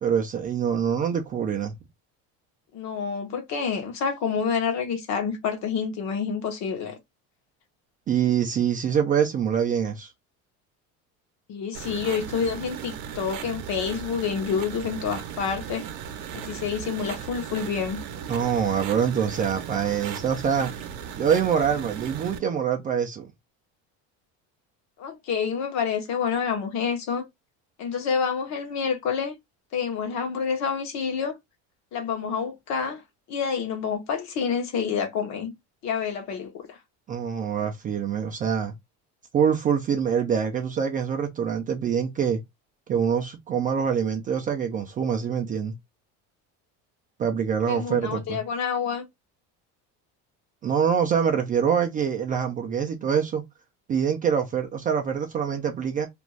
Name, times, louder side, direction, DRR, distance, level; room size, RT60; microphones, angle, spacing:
voice 1, 0.0-1.8 8.1-10.1 18.3-20.7 21.2-23.3 37.1-38.7 39.3-42.4 42.9-45.7 47.2-48.4 50.6-53.4 53.9-56.1, right 7 dB, 25° right, 0.3 m, -25 dB
voice 2, 2.7-7.0 11.5-15.9 16.3-18.0 25.0-27.3 27.8-29.3 29.7-31.3 31.9-33.0 33.3-35.5 35.8-36.7 47.7-49.1, left 6 dB, 50° left, 0.8 m, -28 dB
sound 1, 11.7-22.4, right 8 dB, 65° right, 0.7 m, -37 dB
2.5 x 2.2 x 3.0 m
cardioid pair, 140°, 35 cm